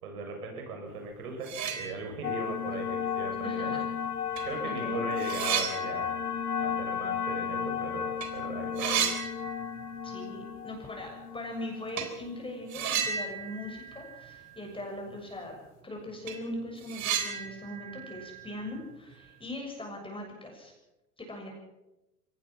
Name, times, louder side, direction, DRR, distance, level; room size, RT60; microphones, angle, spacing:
voice 1, 0.0-3.8 4.4-6.1 6.6-9.1, right 4 dB, 75° right, 3 dB, 7.5 m, -39 dB
sound 1, 1.0-1.1 1.4-2.4 2.8-2.9 3.9-4.0 4.4-8.3 8.5-10.1 10.4-10.5 11.9-12.2 12.7-14.8 15.1-15.2 15.7-15.8 16.1-19.3, right 8 dB, 40° right, 3.8 m, -35 dB
sound 2, 2.2-13.0, left 7 dB, 85° left, 2.6 m, -34 dB
voice 2, 3.4-3.9 4.4-5.0 10.0-15.5 15.8-20.7 21.2-21.5, left 1 dB, 10° left, 1 dB, 6.9 m, -40 dB
24.0 x 18.0 x 6.0 m, 0.96 s
hypercardioid pair, 90°, 45 cm